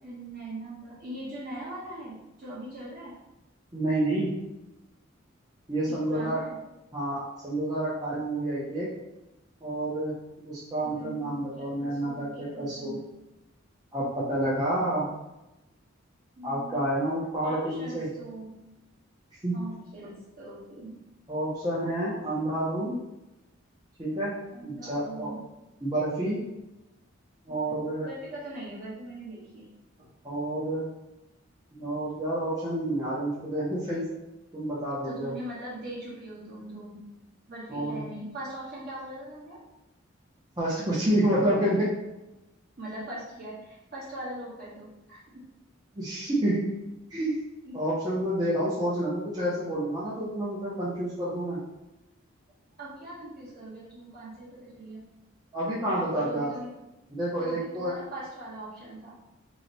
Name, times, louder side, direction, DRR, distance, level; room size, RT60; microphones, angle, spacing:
voice 1, 0.0-3.2 5.9-6.5 10.8-13.0 16.4-17.0 17.4-18.6 19.5-21.0 24.5-25.4 27.5-29.7 30.0-30.1 32.2-32.3 35.0-37.1 37.5-39.6 42.8-45.4 47.6-47.8 52.8-55.0 56.0-56.8 57.4-59.2, right 1 dB, 50° right, -7 dB, 1.2 m, -41 dB
voice 2, 3.7-4.3 5.7-6.4 6.9-8.9 9.6-10.1 10.4-13.0 13.9-15.1 16.4-18.1 19.4-19.6 21.3-23.0 24.0-24.3 24.6-25.3 25.8-26.4 27.5-28.1 30.2-30.8 31.7-34.0 34.5-35.3 37.7-38.0 40.6-41.9 46.0-46.6 47.1-47.3 47.7-51.6 55.5-56.5 57.1-58.0, right 1 dB, 20° right, -9 dB, 0.6 m, -29 dB
3.1 x 2.1 x 3.9 m, 0.95 s
head